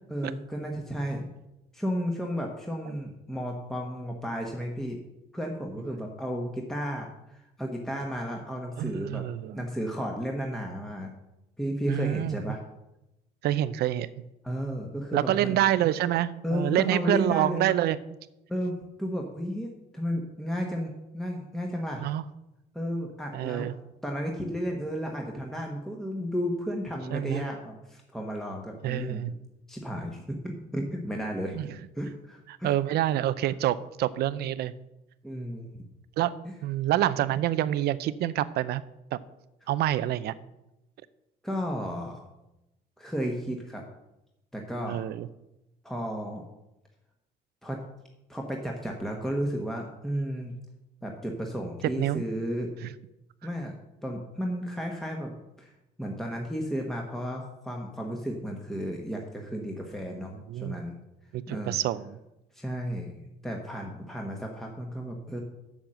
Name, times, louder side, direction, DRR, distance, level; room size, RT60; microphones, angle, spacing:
voice 1, 0.1-1.2 1.7-5.0 5.3-9.2 9.5-11.1 11.6-12.6 14.4-15.6 16.4-17.7 18.5-22.0 22.7-23.7 24.0-29.2 29.7-31.6 31.9-32.8 35.2-35.8 36.4-36.5 39.6-39.7 41.4-42.2 43.0-43.8 44.5-45.0 45.8-46.4 47.6-47.8 48.3-50.5 51.0-52.7 53.4-53.7 54.0-55.3 55.6-55.7 56.0-61.0 61.5-61.8 62.5-65.4, equal, ahead, 0 dB, 1.3 m, -33 dB
voice 2, 8.8-9.6 11.9-12.4 13.4-14.1 15.1-18.0 22.0-22.2 23.3-23.7 27.1-27.4 28.8-29.4 31.5-31.8 32.6-34.7 36.2-36.4 36.6-38.8 39.1-39.2 39.7-40.3 44.9-45.3 52.0-52.2 52.8-52.9 60.0-60.8 61.3-62.2, right 13 dB, 70° right, 16 dB, 0.6 m, -27 dB
7.2 x 7.2 x 7.7 m, 0.92 s
cardioid pair, 110°, 17 cm